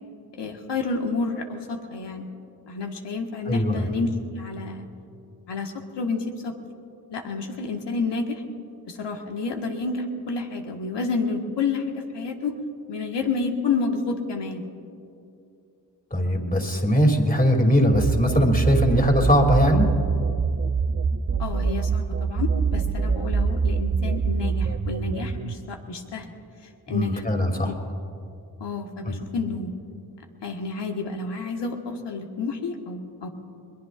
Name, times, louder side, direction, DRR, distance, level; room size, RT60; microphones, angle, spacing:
voice 1, 0.4-2.3 2.7-4.1 4.3-4.9 5.5-6.5 7.1-8.4 8.8-12.5 12.9-14.7 21.4-26.3 26.9-27.2 27.6-27.8 28.6-29.7 30.4-33.3, left 4 dB, 75° left, 2 dB, 1.7 m, -29 dB
voice 2, 3.5-3.9 16.1-19.9 26.9-27.7 29.1-29.2, equal, 20° left, 2 dB, 2.9 m, -20 dB
sound 1, 17.9-25.5, right 5 dB, 30° right, 0.8 m, -24 dB
22.0 x 21.5 x 2.6 m, 2.6 s
supercardioid pair, 45°, 42 cm